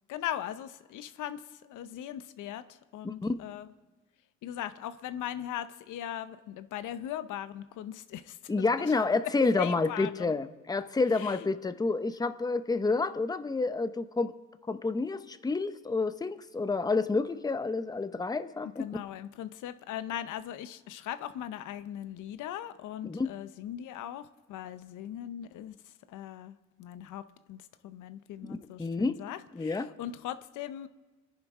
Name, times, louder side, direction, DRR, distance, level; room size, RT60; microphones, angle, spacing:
voice 1, 0.1-3.7 4.4-8.9 9.5-10.3 11.1-11.4 18.6-25.8 26.1-30.9, left 11 dB, 80° left, 12 dB, 0.7 m, -39 dB
voice 2, 3.0-3.4 8.5-14.3 14.7-18.9 23.0-23.3 28.4-29.2 29.5-29.9, left 3 dB, 15° left, 11 dB, 0.7 m, -29 dB
24.5 x 10.5 x 3.6 m, 1.3 s
cardioid pair, 90°, 30 cm